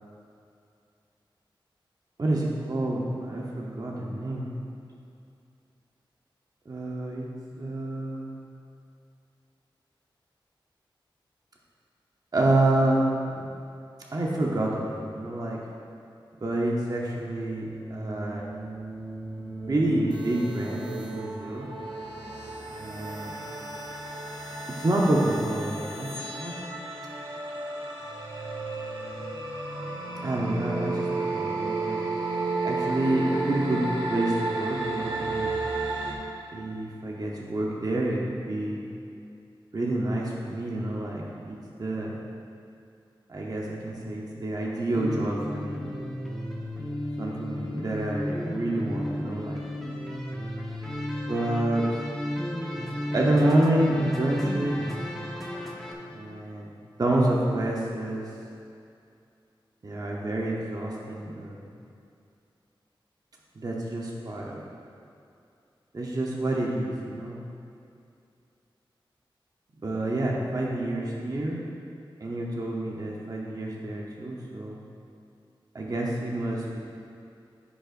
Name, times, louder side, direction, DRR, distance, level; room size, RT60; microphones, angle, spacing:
voice 1, 2.2-4.5 6.7-7.3 7.6-8.3 12.3-13.0 13.3-13.5 14.1-15.6 16.4-18.4 19.7-21.7 22.7-23.4 24.8-26.5 30.2-32.0 32.6-35.5 36.5-38.8 39.7-42.1 43.3-45.8 47.2-49.6 51.3-51.8 53.1-54.8 56.1-56.7 57.0-58.3 59.8-61.6 63.6-64.6 65.9-67.4 69.8-71.6 72.2-74.8 75.7-76.8, right 1 dB, 45° right, -3 dB, 0.9 m, -28 dB
sound 1, 17.0-36.1, right 3 dB, 75° right, 1.3 m, -33 dB
sound 2, 44.9-55.9, left 1 dB, ahead, 1.1 m, -34 dB
14.0 x 5.4 x 2.6 m, 2.5 s
wide cardioid pair, 95°, 9 cm